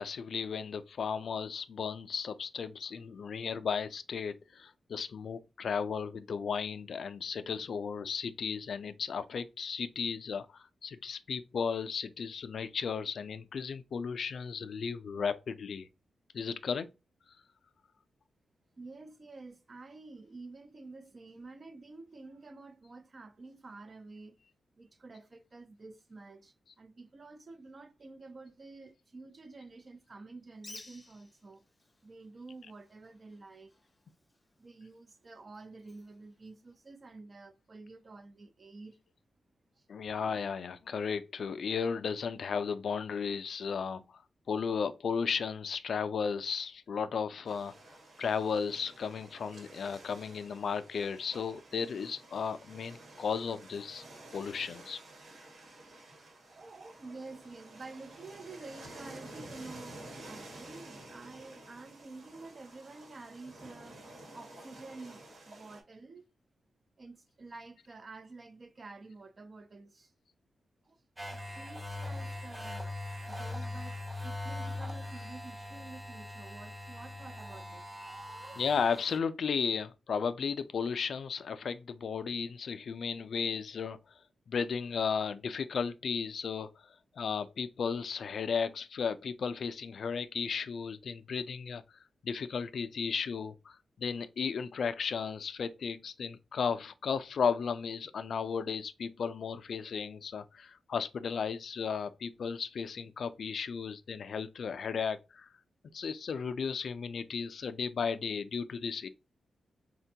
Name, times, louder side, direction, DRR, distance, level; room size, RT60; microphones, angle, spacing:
voice 1, 0.0-15.9 16.3-16.9 39.9-44.2 44.5-47.7 48.2-54.0 54.3-55.0 78.6-84.0 84.5-86.7 87.2-91.8 92.2-105.5 105.9-109.1, left 6 dB, 65° left, 0.3 m, -34 dB
voice 2, 18.8-24.4 24.8-31.6 32.0-33.8 34.6-39.0 39.7-39.9 56.5-64.0 64.3-66.2 67.0-70.1 70.8-71.0 71.3-73.0 73.3-78.7, right 3 dB, 40° right, 0.4 m, -50 dB
Bird, 30.5-37.2, left 2 dB, 20° left, 0.6 m, -57 dB
sound 1, 47.4-65.8, right 1 dB, 70° right, 1.3 m, -51 dB
sound 2, 71.2-79.2, left 2 dB, 20° right, 1.0 m, -41 dB
4.2 x 2.2 x 2.7 m
wide cardioid pair, 115°, 0 cm